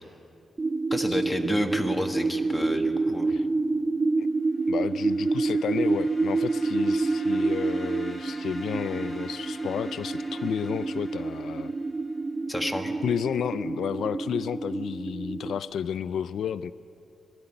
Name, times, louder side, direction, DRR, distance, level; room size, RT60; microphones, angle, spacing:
sound 1, 0.6-15.6, right 3 dB, 25° right, 0.4 m, -28 dB
voice 1, 0.9-3.3 12.5-13.0, left 1 dB, 10° left, 4 dB, 1.5 m, -30 dB
sound 2, 4.5-12.3, left 1 dB, 25° left, 3.0 m, -47 dB
voice 2, 4.7-11.7 13.0-16.7, left 8 dB, 85° left, 15 dB, 0.4 m, -32 dB
21.0 x 12.5 x 9.9 m, 2.6 s
wide cardioid pair, 130°, 0 cm